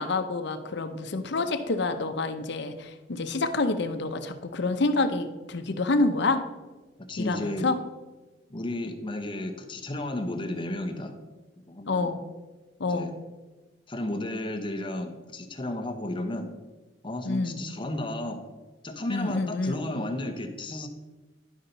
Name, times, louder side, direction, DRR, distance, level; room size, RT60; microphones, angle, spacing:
voice 1, 0.0-6.4 7.2-7.8 11.9-12.2 12.8-13.1 17.2-17.6 19.1-19.8, left 3 dB, 65° left, 8 dB, 0.7 m, -27 dB
voice 2, 7.0-7.7 8.5-11.1 11.7-12.1 12.9-13.1 13.9-16.5 17.0-18.4 18.8-20.9, left 1 dB, 25° left, 5 dB, 0.8 m, -33 dB
11.0 x 5.5 x 3.9 m, 1.2 s
head